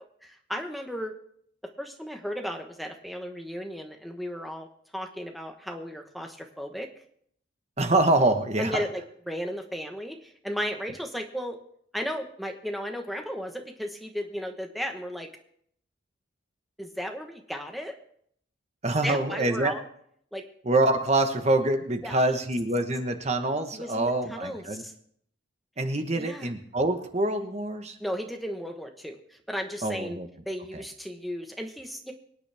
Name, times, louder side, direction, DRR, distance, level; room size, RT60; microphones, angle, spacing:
voice 1, 0.2-1.1 1.8-4.7 4.9-6.9 8.6-11.6 11.9-15.3 16.8-17.9 19.0-19.8 20.3-20.4 22.0-22.4 23.7-24.9 26.1-26.5 28.0-30.2 30.5-32.1, equal, ahead, 3 dB, 1.2 m, -35 dB
voice 2, 7.8-8.8 18.8-19.7 20.6-24.8 25.8-28.0 29.8-30.3 30.7-30.8, right 2 dB, 35° right, 6 dB, 1.2 m, -25 dB
24.5 x 9.5 x 3.5 m, 0.67 s
head